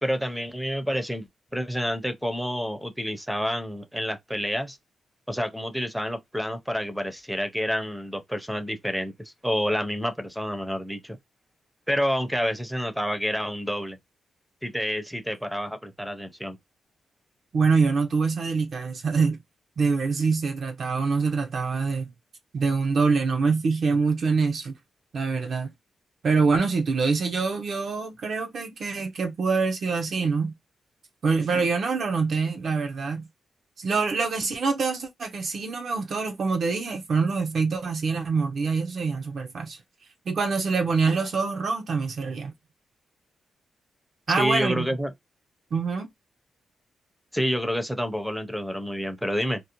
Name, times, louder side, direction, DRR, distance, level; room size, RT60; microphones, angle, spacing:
voice 1, 0.0-4.8 5.3-11.2 11.9-14.0 14.6-16.6 44.4-45.1 47.3-49.6, equal, ahead, 0.5 m, -28 dB
voice 2, 17.5-19.4 19.8-22.1 22.5-24.7 25.1-25.7 26.2-30.5 31.2-33.3 33.8-39.8 40.3-42.5 44.3-45.0 45.7-46.1, right 4 dB, 55° right, 0.4 m, -25 dB
2.4 x 2.0 x 2.8 m
cardioid pair, 120°, 0 cm